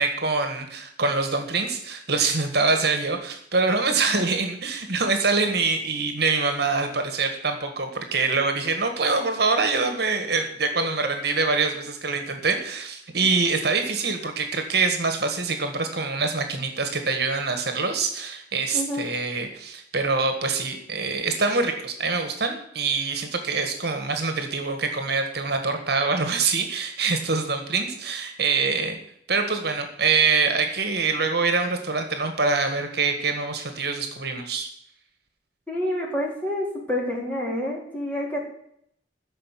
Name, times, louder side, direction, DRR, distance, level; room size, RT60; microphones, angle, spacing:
voice 1, 0.0-29.0 29.3-34.7, right 4 dB, 60° right, 6 dB, 1.7 m, -25 dB
voice 2, 18.7-19.0 35.7-38.4, left 1 dB, 10° left, -3 dB, 3.9 m, -28 dB
14.0 x 5.5 x 9.2 m, 0.70 s
head